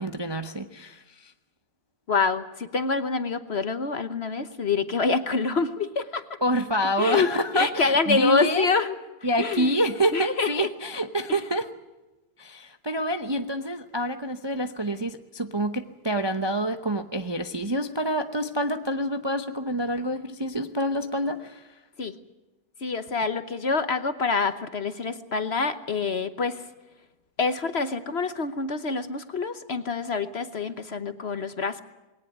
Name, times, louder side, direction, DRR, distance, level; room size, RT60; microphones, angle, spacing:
voice 1, 0.0-1.3 6.4-8.7 9.2-11.7 12.4-21.7, equal, 25° right, 8 dB, 0.6 m, -27 dB
voice 2, 2.1-6.2 7.0-7.3 7.5-9.0 9.4-9.7 10.1-10.7 22.0-22.1 22.8-26.6 27.4-31.8, left 4 dB, 45° left, 11 dB, 1.1 m, -26 dB
21.0 x 18.0 x 9.3 m, 1.1 s
omnidirectional pair, 1.7 m